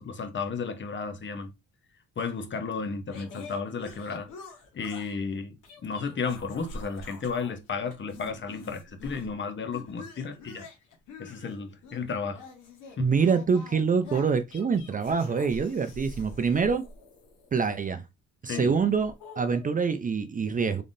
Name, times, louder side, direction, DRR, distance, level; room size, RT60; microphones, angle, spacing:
voice 1, 0.0-1.5 2.2-4.3 4.7-5.6 5.8-10.7 11.2-12.5 13.0-13.1 18.5-18.9, left 5 dB, 40° left, 0.8 m, -33 dB
sound 1, 3.1-5.2 5.6-7.5 7.8-9.3 9.7-17.7 18.4-19.8, left 2 dB, 80° left, 1.4 m, -46 dB
voice 2, 13.0-16.8 17.5-18.0 18.4-20.8, right 5 dB, 30° right, 0.4 m, -25 dB
3.8 x 3.5 x 2.6 m
cardioid pair, 90°, 30 cm